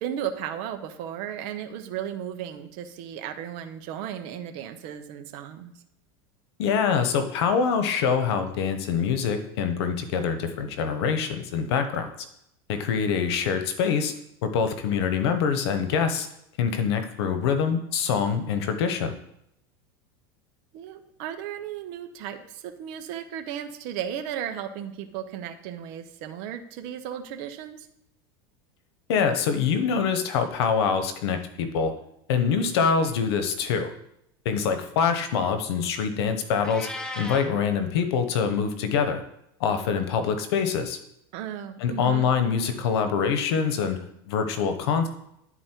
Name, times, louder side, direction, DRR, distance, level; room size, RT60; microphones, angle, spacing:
voice 1, 0.0-5.7 20.7-27.9 41.3-42.3, right 9 dB, 55° right, 7 dB, 1.0 m, -35 dB
voice 2, 6.6-12.1 12.7-14.1 14.4-16.3 16.6-19.1 29.1-31.9 32.3-33.9 34.4-36.9 37.1-39.2 39.6-41.0 41.8-44.0 44.3-45.1, left 6 dB, 75° left, 8 dB, 1.1 m, -25 dB
Meow, 36.6-37.5, left 1 dB, 5° left, 0.7 m, -35 dB
10.5 x 4.2 x 4.5 m, 0.78 s
supercardioid pair, 140°, 14 cm